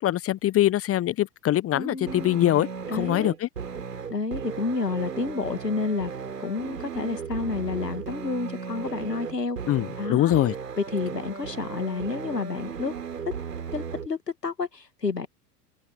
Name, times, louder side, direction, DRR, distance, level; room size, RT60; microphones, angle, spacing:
voice 1, 0.0-3.5 9.7-10.5, left 13 dB, 30° left, 1.2 m, -23 dB
voice 2, 1.7-2.4 2.9-3.4 4.1-6.1 6.4-9.6 10.0-10.3 10.8-12.9 13.2-13.3 13.7-15.3, left 4 dB, 90° left, 2.1 m, -30 dB
sound 1, 2.1-14.1, right 6 dB, 80° right, 4.5 m, -36 dB
open air
figure-of-eight pair, 85°, 47 cm